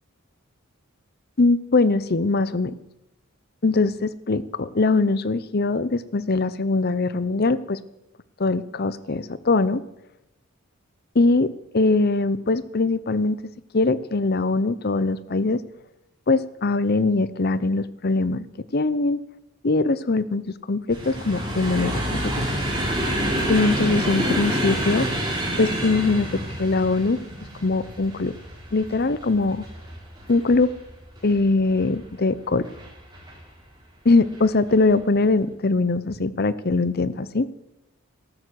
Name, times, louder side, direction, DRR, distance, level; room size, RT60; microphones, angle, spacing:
voice 1, 1.4-2.7 3.6-7.8 8.4-9.8 11.1-13.4 13.7-15.6 16.3-18.4 18.7-19.2 19.6-22.4 23.5-25.1 25.6-27.2 27.6-28.3 28.7-29.7 30.3-30.7 31.2-32.6 34.0-37.5, left 3 dB, 45° left, 16 dB, 0.7 m, -22 dB
sound 1, 20.9-32.0 32.6-33.3 34.2-34.4 34.7-34.8, equal, 20° right, 4.4 m, -28 dB
13.5 x 12.5 x 6.4 m, 0.89 s
head